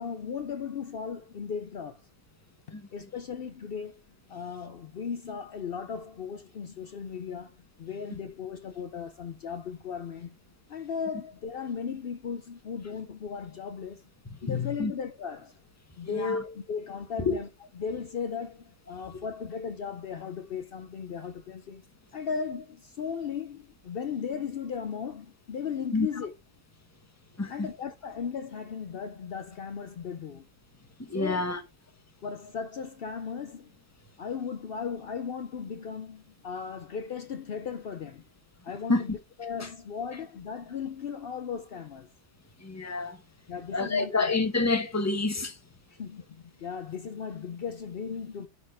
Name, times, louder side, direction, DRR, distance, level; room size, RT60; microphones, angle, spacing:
voice 1, 0.0-2.0 2.9-4.0 4.3-10.3 10.7-14.0 14.4-15.5 16.0-17.5 17.8-21.9 22.1-26.3 27.5-30.5 31.1-31.4 32.2-33.7 34.2-38.2 38.6-42.1 43.5-44.3 45.9-48.5, left 6 dB, 80° left, 0.5 m, -36 dB
voice 2, 14.4-14.9 16.0-16.4 17.2-17.4 19.0-19.1 25.9-26.1 27.4-27.7 31.0-31.6 38.9-39.0 39.6-39.7 42.6-43.2 43.7-45.6, left 3 dB, 10° left, 0.8 m, -28 dB
11.0 x 4.4 x 4.8 m
omnidirectional pair, 1.8 m